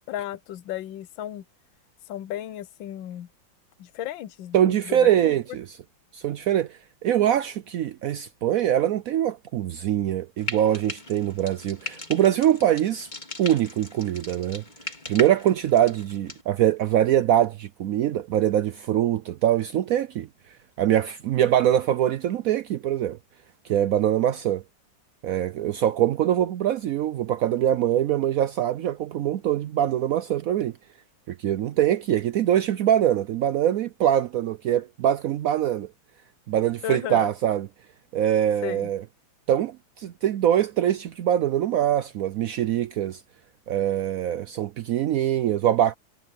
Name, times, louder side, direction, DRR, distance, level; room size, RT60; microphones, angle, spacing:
voice 1, 0.1-1.4 2.1-3.3 3.8-5.3 36.8-37.3 38.6-38.9, left 12 dB, 75° left, 1.4 m, -34 dB
voice 2, 4.5-5.8 6.1-13.1 13.4-14.6 15.1-20.3 20.8-23.2 23.6-24.6 25.2-30.8 31.3-35.9 36.5-37.7 38.1-39.0 39.5-43.2 43.7-45.9, right 11 dB, 90° right, 0.7 m, -23 dB
Frying (food), 10.4-16.4, left 2 dB, 20° left, 3.0 m, -39 dB
omnidirectional pair, 2.1 m